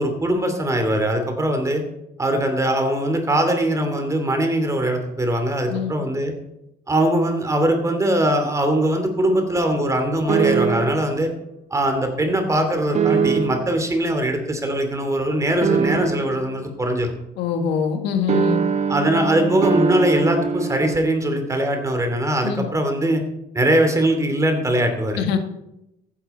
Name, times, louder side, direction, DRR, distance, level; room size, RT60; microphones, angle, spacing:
voice 1, 0.0-1.8 2.2-6.3 6.9-11.3 11.7-17.1 18.9-23.2 23.5-25.2, right 1 dB, 20° right, 6 dB, 2.8 m, -21 dB
sound 1, 10.3-11.1 12.9-13.8 15.6-16.5 18.3-21.0, right 5 dB, 40° right, 1.2 m, -21 dB
voice 2, 17.4-18.6 22.4-22.7 25.2-25.4, left 6 dB, 90° left, 6 dB, 1.6 m, -23 dB
15.0 x 9.6 x 4.4 m, 0.86 s
cardioid pair, 110°, 17 cm